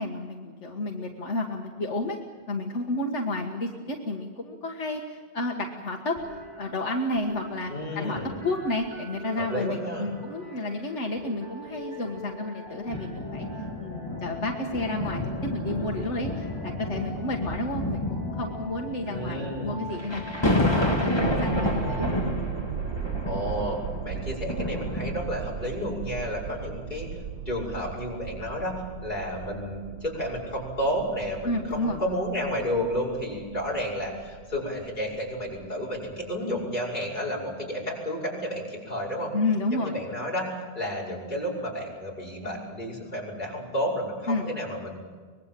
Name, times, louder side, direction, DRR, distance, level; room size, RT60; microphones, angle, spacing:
voice 1, 0.0-2.2 2.5-6.2 6.6-13.5 13.8-22.1 31.4-32.0 39.3-40.0 44.3-44.5, left 2 dB, 85° left, 2 dB, 1.9 m, -31 dB
sound 1, 6.2-22.2, left 1 dB, 45° right, 6.3 m, -43 dB
voice 2, 7.6-8.4 9.4-10.0 19.1-19.8 23.3-39.3 39.7-45.0, equal, 40° left, -3 dB, 5.9 m, -31 dB
sound 2, 12.9-25.7 26.4-26.5, left 1 dB, 20° left, 2.4 m, -30 dB
sound 3, 21.2-36.3, right 7 dB, 75° right, 1.1 m, -37 dB
24.0 x 20.5 x 7.6 m, 1.5 s
omnidirectional pair, 1.2 m